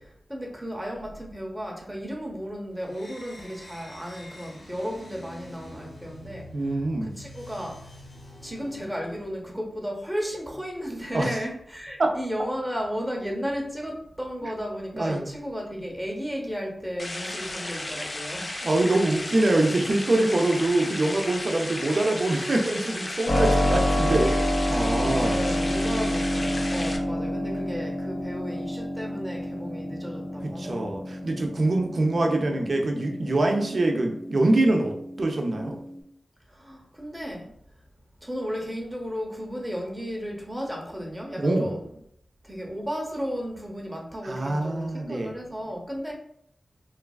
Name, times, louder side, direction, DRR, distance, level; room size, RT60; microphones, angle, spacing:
voice 1, 0.3-8.0 8.4-18.7 25.0-31.1 36.5-37.8 38.2-41.9 42.4-46.1, equal, 5° right, 0 dB, 0.8 m, -34 dB
sound 1, 2.8-9.5, left 1 dB, 80° left, 0.6 m, -46 dB
voice 2, 6.5-7.1 11.1-11.3 12.0-12.1 14.9-15.2 18.6-25.4 30.4-35.8 41.4-41.8 44.2-45.3, right 2 dB, 65° right, 2 dB, 0.5 m, -24 dB
sound 2, 17.0-27.0, left 1 dB, 40° left, 0.4 m, -34 dB
Keyboard (musical), 23.3-36.0, left 1 dB, 65° left, 1.4 m, -28 dB
3.1 x 2.2 x 2.3 m, 0.70 s
cardioid pair, 50°, 0 cm